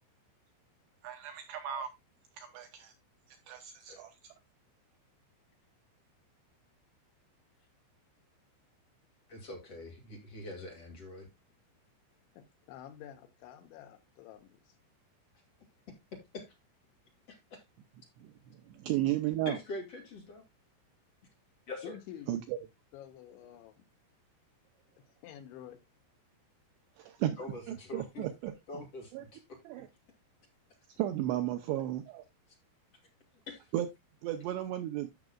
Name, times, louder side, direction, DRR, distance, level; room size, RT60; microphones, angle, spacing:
voice 1, 1.0-1.9 2.4-2.9 3.5-4.1 18.2-18.3 18.7-19.6 22.3-22.6 27.0-27.3 27.7-28.5 29.1-29.2 29.7-29.9 31.0-32.2 33.7-33.9 34.2-35.1, right 13 dB, 80° right, 2.5 m, -34 dB
voice 2, 9.3-11.3 16.3-16.5 17.3-17.6 19.5-20.4 21.7-22.0 27.4-28.3 28.7-29.6 33.5-33.7, left 2 dB, 45° left, 2.2 m, -44 dB
voice 3, 12.4-14.8 21.8-22.4 22.9-23.8 25.0-25.8, left 11 dB, 80° left, 3.0 m, -49 dB
14.5 x 6.1 x 2.3 m
omnidirectional pair, 5.7 m